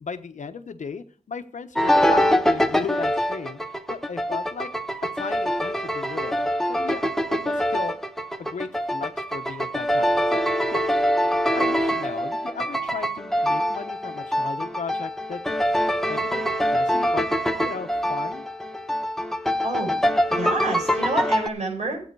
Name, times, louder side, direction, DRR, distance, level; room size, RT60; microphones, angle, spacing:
voice 1, 0.0-4.7 5.1-8.0 8.4-11.3 11.5-15.4 16.1-17.3 17.6-18.4, left 5 dB, 85° left, 9 dB, 1.0 m, -36 dB
sound 1, 1.7-21.5, equal, 5° left, 0.9 m, -24 dB
voice 2, 19.6-20.0 20.3-22.0, right 2 dB, 70° right, 1 dB, 5.6 m, -28 dB
13.0 x 8.8 x 4.7 m, 0.43 s
wide cardioid pair, 100°, 12 cm